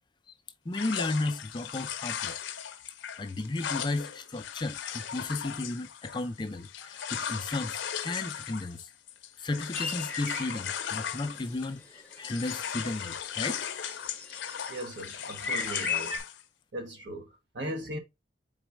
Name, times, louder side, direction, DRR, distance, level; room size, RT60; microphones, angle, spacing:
sound 1, 0.7-11.8 12.1-16.4, left 8 dB, 90° left, 0.6 m, -37 dB
voice 1, 0.7-2.4 3.2-8.9 9.4-13.7, left 2 dB, 25° left, 0.4 m, -34 dB
sound 2, 9.8-16.2, left 4 dB, 10° left, 0.8 m, -38 dB
voice 2, 14.7-16.2 16.7-18.0, right 1 dB, 75° right, 1.2 m, -38 dB
4.1 x 4.0 x 3.3 m
head